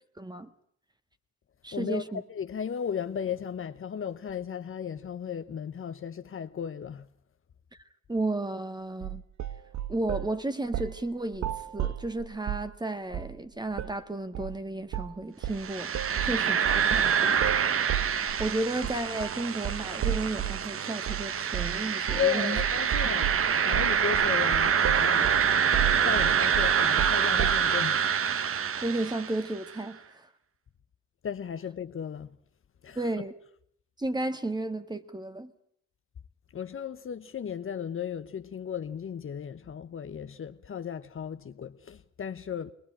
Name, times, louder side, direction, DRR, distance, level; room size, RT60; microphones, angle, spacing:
voice 1, 0.2-0.5 1.6-2.2 8.1-9.2 9.9-15.9 16.2-17.4 18.4-22.6 23.0-23.2 28.8-30.3 33.0-33.3 34.0-35.5, right 2 dB, 15° right, 1.7 m, -33 dB
voice 2, 1.7-7.1 16.1-16.4 22.2-25.3 26.0-28.0 31.2-32.4 32.8-33.2 36.5-42.7, left 8 dB, 45° left, 1.0 m, -35 dB
sound 1, 9.0-10.3 10.7-11.0 11.3-12.7 13.1-13.4 13.7-14.0 14.3-14.6 14.9-15.2 15.4-20.7 21.1-21.3 21.5-21.8 22.1-22.3 22.6-27.7, right 11 dB, 65° right, 1.3 m, -33 dB
sound 2, 15.6-29.5, right 7 dB, 45° right, 1.1 m, -26 dB
21.5 x 20.5 x 8.9 m
cardioid pair, 90°, 30 cm